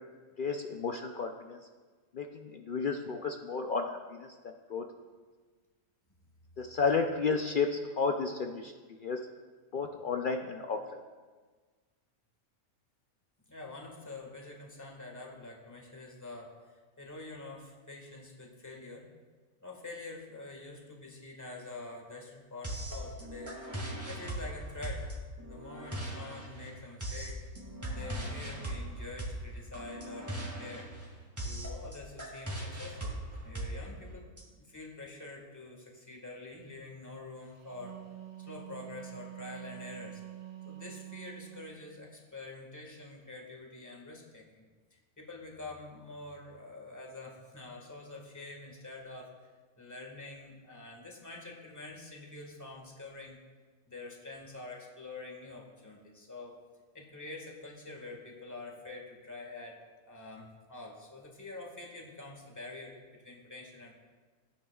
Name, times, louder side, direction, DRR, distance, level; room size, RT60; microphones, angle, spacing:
voice 1, 0.4-1.6 2.1-4.3 4.7-4.9 6.6-9.2 9.7-11.0, left 4 dB, 80° left, 4 dB, 0.4 m, -32 dB
voice 2, 13.5-19.0 19.6-23.5 24.0-25.1 25.4-27.4 27.9-30.9 31.4-38.0 38.4-40.2 40.6-44.6 44.9-49.5 49.8-53.4 53.9-56.6 56.9-64.0, left 2 dB, 10° left, -1 dB, 1.5 m, -46 dB
sound 1, 22.6-34.4, right 1 dB, 10° right, 1.8 m, -39 dB
Wind instrument woodwind instrument, 37.6-41.8, right 15 dB, 55° right, 1.0 m, -46 dB
15.0 x 9.9 x 2.3 m, 1.4 s
omnidirectional pair, 1.6 m